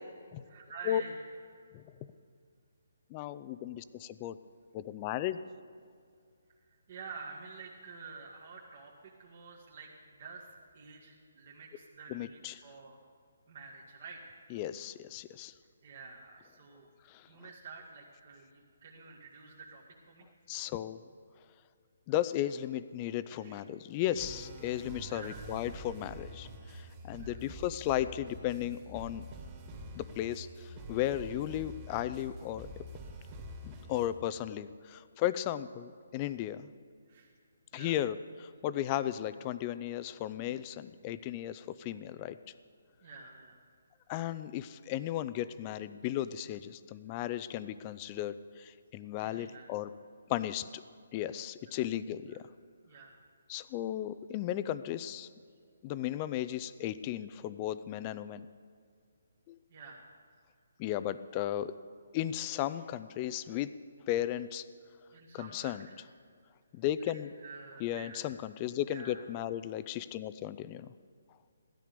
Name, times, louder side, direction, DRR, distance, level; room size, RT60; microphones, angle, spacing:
voice 1, 0.4-1.2 6.6-10.5 10.7-13.0 13.5-14.4 15.8-16.9 17.2-20.3 20.5-20.7 23.3-23.6 25.1-25.4 27.2-27.5 33.7-33.8 37.1-37.3 37.7-38.0 43.0-43.6 47.1-47.2 49.2-49.7 51.7-51.8 52.3-52.4 52.8-53.1 59.7-60.0 65.1-66.0 67.0-68.2 68.9-69.2, right 4 dB, 45° right, -2 dB, 1.9 m, -49 dB
voice 2, 3.1-4.4 4.7-5.4 12.1-12.5 14.5-15.5 17.1-17.3 20.5-21.0 22.1-29.3 29.9-32.7 33.6-36.7 37.7-42.4 44.1-49.9 50.3-50.8 51.1-52.4 53.5-55.3 55.8-58.5 59.5-59.6 60.8-61.7 62.1-63.7 64.1-64.7 65.3-65.9 66.7-67.3 67.8-70.9, left 12 dB, 25° left, 14 dB, 0.5 m, -35 dB
sound 1, 24.1-34.1, right 1 dB, 25° right, 2.2 m, -47 dB
16.5 x 12.5 x 5.2 m, 2.3 s
hypercardioid pair, 155°, 0 cm